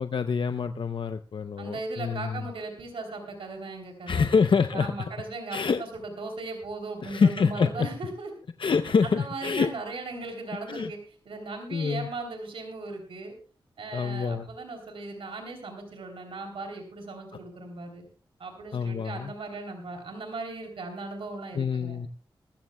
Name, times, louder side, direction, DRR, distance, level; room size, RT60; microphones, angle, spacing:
voice 1, 0.0-2.5 4.1-5.1 5.5-5.8 7.0-7.9 8.6-9.7 10.7-10.9 11.7-12.1 13.9-14.5 18.7-19.3 21.5-22.1, left 5 dB, 65° left, 9 dB, 0.6 m, -26 dB
voice 2, 1.6-4.3 4.7-8.3 9.0-11.0 11.2-13.3 13.8-18.0 18.4-22.0, right 3 dB, 85° right, 3 dB, 3.2 m, -38 dB
20.5 x 14.5 x 2.2 m, 0.37 s
cardioid pair, 45°, 9 cm